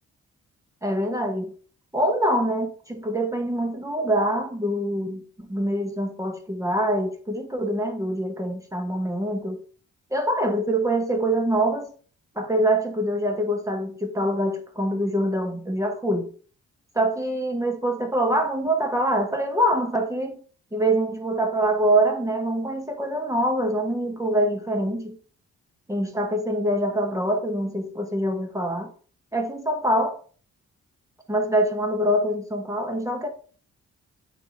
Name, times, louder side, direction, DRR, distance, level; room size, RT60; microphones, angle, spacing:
voice 1, 0.8-1.5 1.9-9.6 10.1-11.9 12.3-16.3 16.9-20.4 20.7-25.2 25.9-28.9 29.3-30.2 31.3-33.3, right 1 dB, 10° right, 1.2 m, -24 dB
8.2 x 2.8 x 4.5 m
cardioid pair, 65°, 31 cm